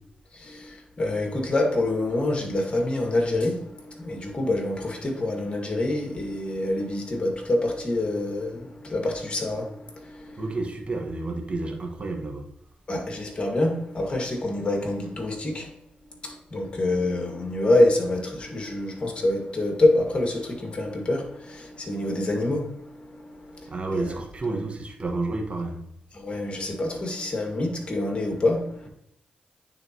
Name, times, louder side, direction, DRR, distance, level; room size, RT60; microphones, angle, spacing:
voice 1, 0.3-10.4 12.9-15.7 16.2-24.1 24.5-24.6 26.1-28.9, left 2 dB, 35° left, 2.1 m, -26 dB
voice 2, 10.4-12.4 23.7-25.8, right 2 dB, 40° right, 1.5 m, -30 dB
9.5 x 3.7 x 3.0 m
cardioid pair, 60°, 3 cm